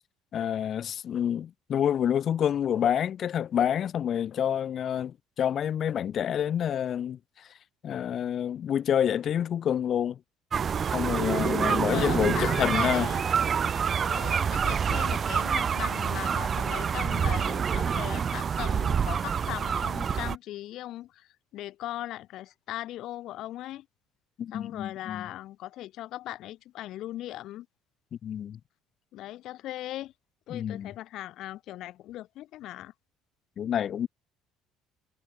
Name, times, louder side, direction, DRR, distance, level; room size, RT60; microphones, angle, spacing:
voice 1, 0.3-7.5 7.8-10.2 10.9-13.1 24.4-25.3 28.2-28.6 30.5-30.9 33.6-34.1, left 9 dB, 35° left, 5.0 m, -28 dB
sound 1, 10.5-20.4, right 7 dB, 25° right, 0.5 m, -27 dB
voice 2, 11.2-13.3 14.0-23.9 24.5-27.7 29.1-30.1 30.5-32.9, left 14 dB, 50° left, 6.2 m, -38 dB
cardioid pair, 170°, 0 cm